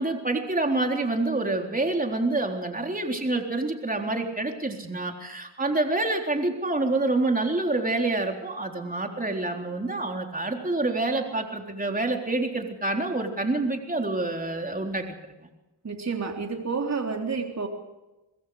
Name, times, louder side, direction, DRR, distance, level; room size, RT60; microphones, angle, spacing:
voice 1, 0.0-15.1, right 2 dB, 20° right, 2 dB, 3.9 m, -27 dB
voice 2, 15.8-17.7, right 4 dB, 35° right, 2 dB, 3.7 m, -29 dB
23.0 x 22.5 x 5.0 m, 1.0 s
cardioid pair, 65°, 46 cm